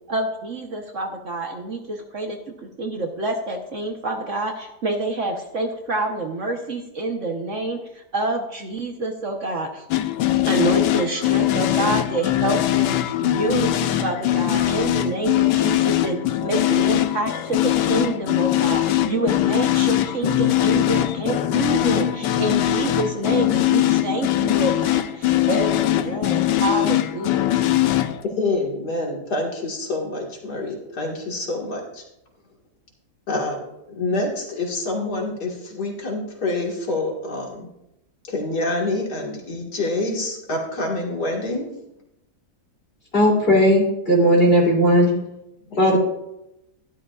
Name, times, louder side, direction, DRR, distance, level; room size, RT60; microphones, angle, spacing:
voice 1, 0.1-2.4 2.8-9.8 10.5-16.2 16.4-27.7, right 2 dB, 50° right, 2 dB, 1.3 m, -27 dB
sound 1, 9.9-28.2, left 13 dB, 90° left, 1.3 m, -21 dB
voice 2, 28.2-32.0 33.3-33.6 34.0-37.7 38.3-41.7 45.7-46.0, left 2 dB, 70° left, -1 dB, 2.5 m, -27 dB
voice 3, 43.1-45.1 45.8-46.0, equal, 35° left, -3 dB, 3.2 m, -16 dB
13.0 x 12.0 x 2.4 m, 0.86 s
omnidirectional pair, 1.8 m